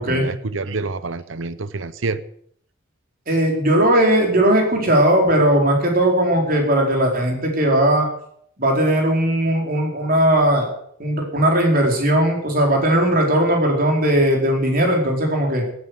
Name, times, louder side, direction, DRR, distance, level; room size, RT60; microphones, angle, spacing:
voice 1, 0.0-2.2, right 3 dB, 70° right, 15 dB, 0.8 m, -27 dB
voice 2, 3.3-8.1 8.6-10.7 11.0-15.6, right 1 dB, 45° right, 1 dB, 4.6 m, -18 dB
15.0 x 9.5 x 8.1 m, 0.66 s
head